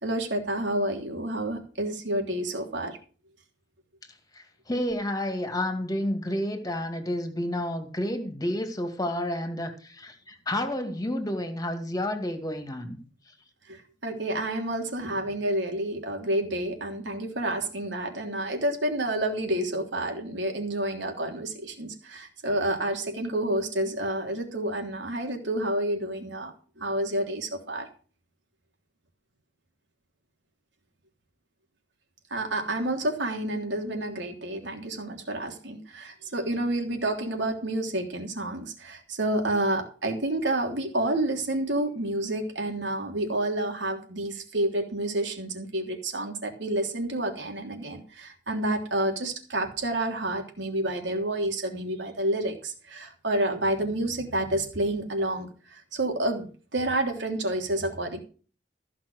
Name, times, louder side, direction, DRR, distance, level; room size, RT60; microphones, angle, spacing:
voice 1, 0.0-3.0 13.7-27.9 32.3-58.2, right 1 dB, 70° right, 3.2 m, -29 dB
voice 2, 4.3-13.0, left 1 dB, 20° left, 2.2 m, -30 dB
15.0 x 6.2 x 6.3 m
head